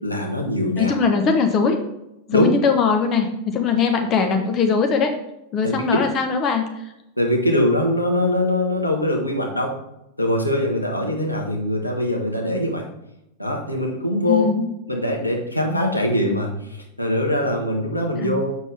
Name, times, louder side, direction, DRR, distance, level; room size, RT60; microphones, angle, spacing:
voice 1, 0.0-0.9 2.3-2.5 5.6-5.7 7.2-9.7 10.2-12.8 13.4-14.5 14.9-18.5, left 1 dB, 85° left, 0 dB, 1.4 m, -22 dB
voice 2, 0.8-1.8 2.3-5.1 5.5-6.7 14.3-14.7 18.2-18.4, left 5 dB, 30° left, 5 dB, 1.0 m, -20 dB
7.2 x 6.4 x 3.4 m, 0.86 s
figure-of-eight pair, 90°, 0 cm